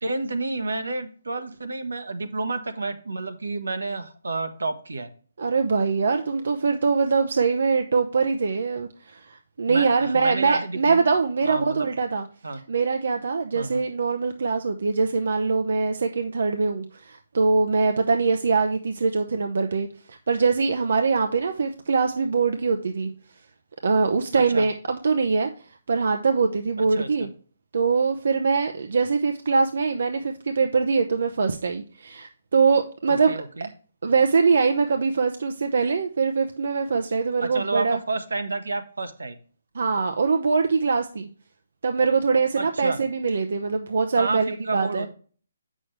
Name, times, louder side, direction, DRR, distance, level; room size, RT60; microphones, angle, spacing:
voice 1, 0.0-5.1 9.7-11.0 11.4-11.9 12.4-12.6 13.5-13.8 24.3-24.7 26.8-27.3 33.1-33.7 37.4-39.4 42.6-43.0 44.2-45.1, right 3 dB, 85° right, 7 dB, 1.2 m, -30 dB
voice 2, 5.4-12.2 12.7-23.1 23.8-25.5 25.9-27.3 27.7-33.4 34.0-38.0 39.7-41.3 41.8-45.1, right 4 dB, 70° right, 6 dB, 0.7 m, -23 dB
7.7 x 6.3 x 3.2 m, 0.42 s
hypercardioid pair, 150°, 0 cm